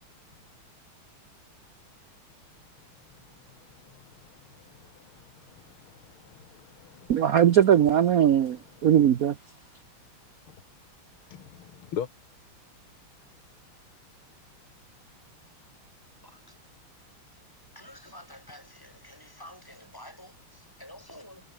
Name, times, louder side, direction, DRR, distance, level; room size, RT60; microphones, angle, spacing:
voice 1, 4.8-5.2 5.6-7.1 10.5-10.6 11.3-12.1, left 8 dB, 85° left, 2.4 m, -40 dB
voice 2, 7.1-9.3, right 10 dB, 55° right, 1.1 m, -20 dB
voice 3, 16.2-16.6 17.8-21.4, left 1 dB, 10° left, 5.8 m, -49 dB
omnidirectional pair, 2.3 m